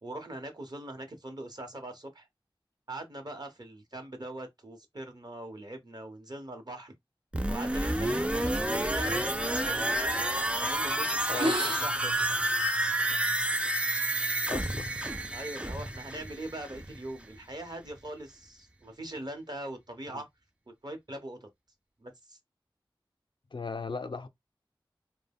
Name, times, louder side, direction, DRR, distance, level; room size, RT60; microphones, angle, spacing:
voice 1, 0.0-2.3 2.9-6.9 7.5-10.2 10.5-12.4 15.3-20.3 20.7-21.5 22.0-22.4, right 1 dB, 50° right, 0.8 m, -42 dB
sound 1, 7.3-17.1 17.4-17.5, right 1 dB, 10° right, 0.3 m, -30 dB
sound 2, 7.4-10.1 10.7-10.9 11.2-13.2, right 1 dB, 75° right, 1.0 m, -37 dB
voice 2, 14.5-14.9 20.1-20.2 23.5-24.3, left 4 dB, 65° left, 0.4 m, -37 dB
2.2 x 2.1 x 3.4 m
wide cardioid pair, 55°, 9 cm